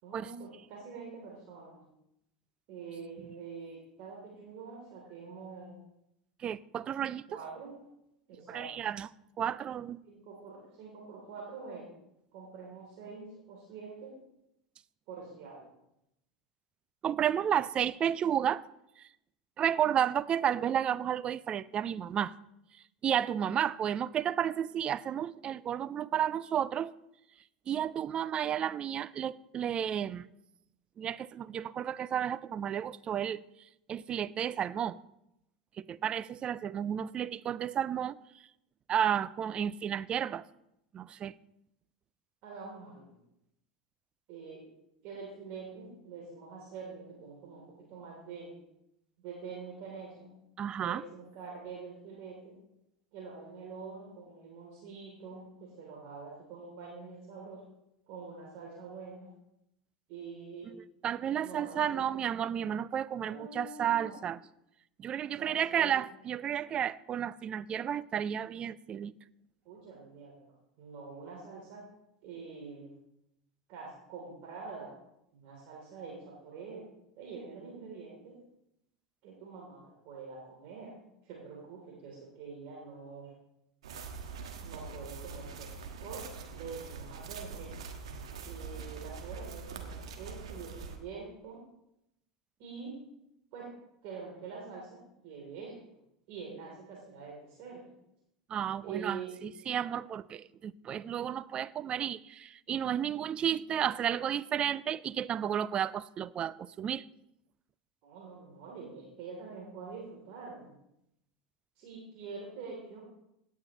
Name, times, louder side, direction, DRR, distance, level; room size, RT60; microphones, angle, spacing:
voice 1, 0.0-1.8 2.7-5.8 7.3-7.8 8.3-8.7 10.0-11.9 12.3-14.2 15.1-15.7 42.4-43.2 44.3-44.6 45.0-48.5 49.2-50.4 50.8-52.6 53.1-57.6 58.1-59.3 60.1-60.7 61.4-62.3 63.2-64.2 65.4-66.0 69.6-71.8 72.2-73.0 73.7-74.9 75.3-76.9 77.2-78.4 79.2-83.3 84.6-87.7 88.4-91.6 92.6-93.0 93.5-93.7 94.0-95.0 95.2-95.8 96.3-97.9 98.8-99.4 108.0-110.7 111.8-113.0, right 5 dB, 50° right, 3.1 m, -45 dB
voice 2, 6.4-7.2 8.5-9.1 9.4-10.0 17.0-18.6 19.0-19.1 19.6-22.3 23.0-26.9 27.7-30.3 31.0-33.4 33.9-35.0 35.8-38.2 38.9-40.4 40.9-41.3 50.6-51.0 61.0-64.4 65.0-69.1 98.5-107.1, right 9 dB, 30° right, 0.4 m, -32 dB
sound 1, 83.8-91.0, right 5 dB, 70° right, 1.4 m, -43 dB
17.0 x 9.4 x 3.0 m
figure-of-eight pair, 80°, 3 cm